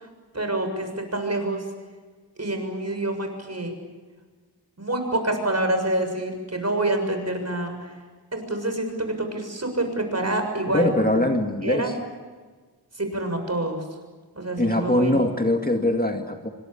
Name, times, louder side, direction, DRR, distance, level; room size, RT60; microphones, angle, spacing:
voice 1, 0.3-1.6 2.4-3.7 4.8-7.9 8.3-11.3 11.6-11.9 13.0-13.8 14.4-15.2, right 1 dB, 40° right, 5 dB, 7.1 m, -27 dB
voice 2, 10.7-11.9 14.6-16.5, left 1 dB, 20° left, 4 dB, 2.1 m, -22 dB
27.5 x 25.0 x 7.2 m, 1.4 s
wide cardioid pair, 75°, 41 cm